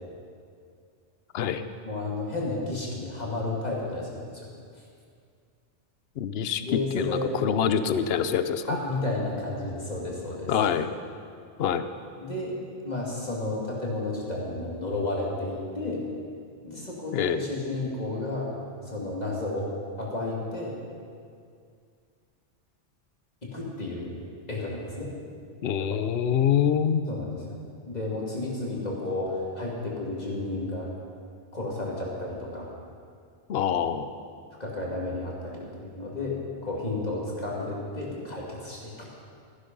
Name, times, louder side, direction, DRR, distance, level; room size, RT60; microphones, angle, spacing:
voice 1, 1.8-4.5 6.6-7.4 8.7-10.6 12.2-12.6 12.8-16.0 16.6-18.5 18.8-19.7 20.0-20.8 23.4-24.1 24.5-25.1 25.8-26.0 27.1-30.9 31.5-32.7 34.6-36.4 36.6-39.1, left 2 dB, 35° left, -4 dB, 2.6 m, -32 dB
voice 2, 6.2-6.6 6.9-8.8 10.5-10.9 11.6-11.9 17.1-17.4 25.6-27.0 33.5-34.1, left 8 dB, 65° left, 11 dB, 0.9 m, -25 dB
15.0 x 10.5 x 5.4 m, 2.3 s
omnidirectional pair, 1.2 m